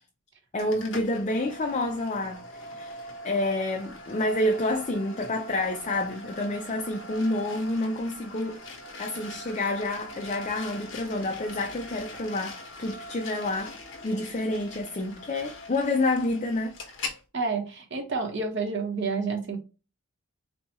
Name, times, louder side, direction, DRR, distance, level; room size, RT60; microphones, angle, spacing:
voice 1, 0.5-2.4 2.8-8.6 9.0-13.8 14.0-16.7, left 2 dB, 30° left, 0.4 m, -28 dB
sound 1, 0.6-17.2, left 2 dB, 55° left, 1.0 m, -42 dB
voice 2, 17.3-19.6, right 4 dB, 55° right, 0.9 m, -29 dB
4.3 x 2.3 x 2.7 m
head